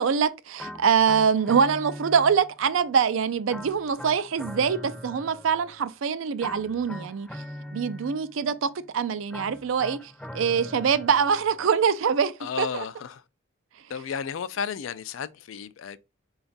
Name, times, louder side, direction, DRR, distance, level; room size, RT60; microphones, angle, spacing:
voice 1, 0.0-7.3 7.7-10.0 10.3-12.8, right 6 dB, 75° right, 0.4 m, -24 dB
sound 1, 0.6-2.7 3.5-5.9 6.4-8.5 9.3-11.7, left 1 dB, 5° left, 0.5 m, -41 dB
voice 2, 12.4-13.2 13.9-16.0, left 7 dB, 75° left, 0.4 m, -33 dB
4.2 x 2.4 x 3.9 m
head